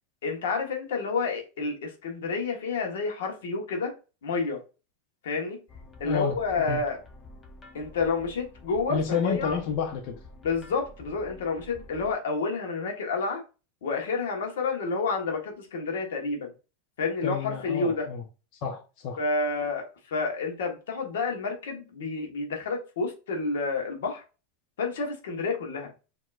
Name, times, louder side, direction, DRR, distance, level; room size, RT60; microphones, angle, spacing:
voice 1, 0.2-3.9 4.2-4.6 5.2-5.6 6.0-7.0 7.7-9.6 10.4-13.4 13.8-16.5 17.0-18.1 19.2-24.2 24.8-25.9, left 4 dB, 85° left, 1.2 m, -29 dB
sound 1, 5.7-12.1, left 2 dB, 25° left, 0.8 m, -49 dB
voice 2, 6.0-6.4 6.7-6.8 8.9-10.2 17.2-18.2 18.6-19.2, left 6 dB, 55° left, 0.9 m, -30 dB
4.5 x 2.9 x 2.4 m
supercardioid pair, 125°, 0 cm